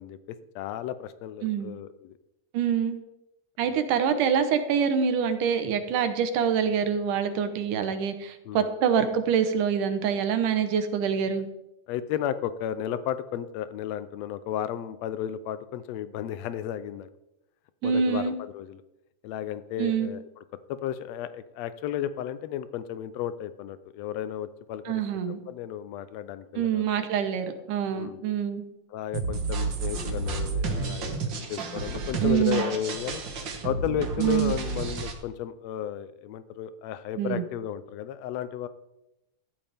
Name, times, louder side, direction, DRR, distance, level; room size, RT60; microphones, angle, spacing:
voice 1, 0.0-2.1 3.6-3.8 8.4-8.7 11.9-17.1 17.8-18.8 19.2-20.4 20.7-25.0 25.5-27.1 27.9-28.2 28.9-33.2 33.6-38.7, left 10 dB, 75° left, 13 dB, 1.7 m, -33 dB
voice 2, 1.4-1.7 2.5-3.0 3.6-11.5 17.8-18.4 19.8-20.1 24.9-25.4 26.6-28.6 32.2-32.6 34.2-34.5 37.2-37.4, right 7 dB, 85° right, 8 dB, 2.6 m, -25 dB
sound 1, 29.1-35.1, right 4 dB, 45° right, 1.7 m, -31 dB
14.5 x 13.0 x 3.5 m, 0.90 s
omnidirectional pair, 3.6 m